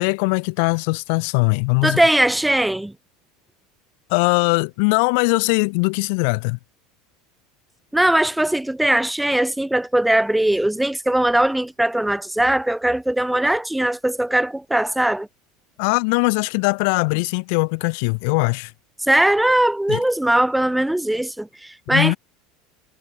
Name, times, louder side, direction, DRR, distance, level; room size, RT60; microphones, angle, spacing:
voice 1, 0.0-2.0 4.1-6.6 15.8-18.7 19.9-20.0 21.9-22.2, left 35 dB, 70° left, 0.4 m, -20 dB
voice 2, 1.8-2.9 7.9-15.3 19.0-22.2, right 1 dB, 5° right, 0.9 m, -20 dB
supercardioid pair, 125°, 0 cm